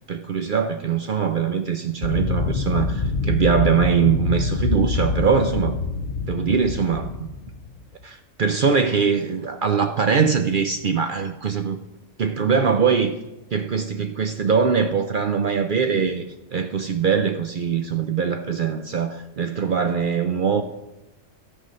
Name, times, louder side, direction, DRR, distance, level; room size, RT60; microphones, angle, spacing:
voice 1, 0.1-5.8 6.3-7.3 8.0-11.8 12.2-13.2 13.5-16.2 16.5-20.6, right 6 dB, 55° right, 0.6 m, -22 dB
sound 1, 2.0-7.8, left 4 dB, 50° left, 0.8 m, -25 dB
12.5 x 6.8 x 5.3 m
omnidirectional pair, 1.4 m